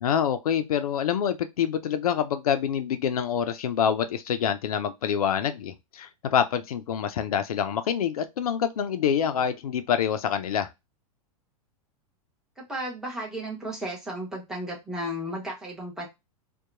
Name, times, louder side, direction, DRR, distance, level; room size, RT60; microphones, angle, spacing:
voice 1, 0.0-10.7, left 8 dB, 75° left, 0.5 m, -26 dB
voice 2, 12.6-16.1, equal, 5° right, 1.0 m, -34 dB
2.8 x 2.2 x 2.5 m
hypercardioid pair, 100°, 19 cm